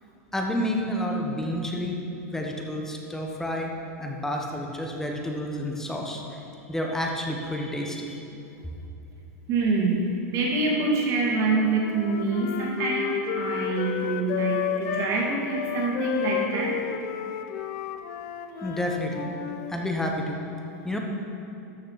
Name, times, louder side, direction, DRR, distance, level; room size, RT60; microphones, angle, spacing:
voice 1, 0.3-2.0 2.3-3.7 4.0-6.4 6.7-8.3 18.6-19.3 19.7-20.4 20.8-21.0, left 1 dB, 5° left, 1 dB, 1.0 m, -30 dB
voice 2, 9.5-16.8, right 3 dB, 40° right, -2 dB, 2.3 m, -26 dB
Wind instrument woodwind instrument, 11.3-15.1 15.5-19.7, left 9 dB, 50° left, 0.6 m, -32 dB
13.0 x 6.6 x 4.7 m, 2.9 s
supercardioid pair, 145°, 9 cm